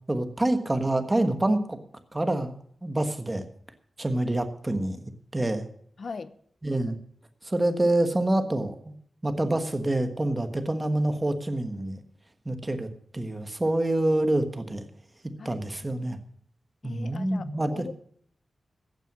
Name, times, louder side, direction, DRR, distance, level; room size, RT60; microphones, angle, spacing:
voice 1, 0.1-1.8 2.1-3.4 4.0-5.0 5.3-5.7 6.6-7.0 7.4-8.9 9.2-12.0 12.4-14.8 15.4-16.2 16.8-17.9, right 1 dB, 20° right, 8 dB, 1.3 m, -27 dB
voice 2, 6.0-6.3 15.4-15.6 15.9-16.1 16.8-17.9, left 4 dB, 55° left, 14 dB, 0.8 m, -40 dB
15.0 x 9.2 x 6.1 m, 0.63 s
wide cardioid pair, 130°, 0 cm